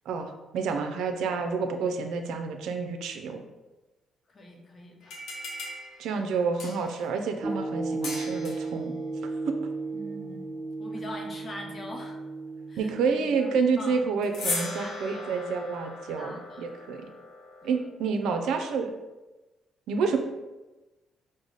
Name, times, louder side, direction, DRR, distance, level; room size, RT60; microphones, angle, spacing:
voice 1, 0.1-3.4 6.0-8.9 9.5-9.6 12.8-17.1 17.6-18.9 19.9-20.2, right 5 dB, 80° right, 5 dB, 0.4 m, -29 dB
voice 2, 4.3-5.2 9.9-10.5 10.8-12.2 12.7-14.0 14.6-15.4 16.1-16.6 17.6-17.7, left 1 dB, 40° left, 1 dB, 0.8 m, -43 dB
sound 1, 5.0-7.0 8.0-8.8 14.2-17.8, left 3 dB, 85° left, 0.8 m, -38 dB
sound 2, 7.4-12.9, right 3 dB, 20° right, 0.5 m, -34 dB
4.7 x 2.1 x 3.9 m, 1.1 s
cardioid pair, 90°, 0 cm